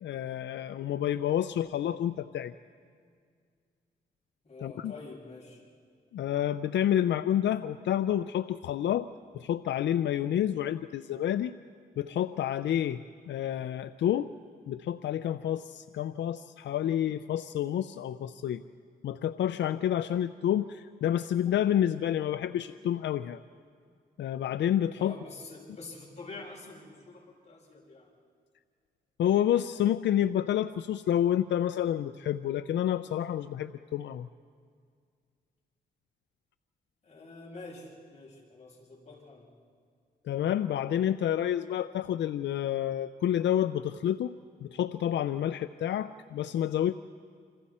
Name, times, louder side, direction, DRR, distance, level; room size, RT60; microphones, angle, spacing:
voice 1, 0.0-2.5 4.6-4.9 6.1-9.1 9.3-11.6 12.0-13.0 13.3-14.3 14.7-18.6 19.0-23.4 24.2-25.1 29.2-34.3 40.3-44.3 44.6-46.9, left 10 dB, 85° left, 12 dB, 0.5 m, -29 dB
voice 2, 4.4-5.6 24.9-28.1 37.0-39.5, left 3 dB, 40° left, -3 dB, 6.4 m, -46 dB
27.5 x 27.0 x 4.3 m, 2.1 s
cardioid pair, 105°, 18 cm